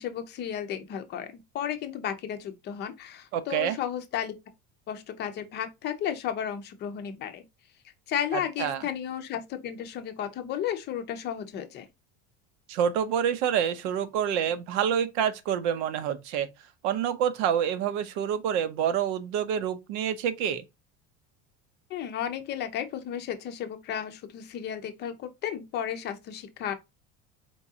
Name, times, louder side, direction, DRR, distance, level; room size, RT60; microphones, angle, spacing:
voice 1, 0.0-4.3 4.9-7.4 8.1-11.9 21.9-26.7, left 9 dB, 30° left, 0.6 m, -33 dB
voice 2, 3.3-3.8 8.6-8.8 12.7-16.5 16.8-20.6, right 8 dB, 80° right, 0.8 m, -27 dB
4.6 x 3.6 x 2.7 m
cardioid pair, 175°, 33 cm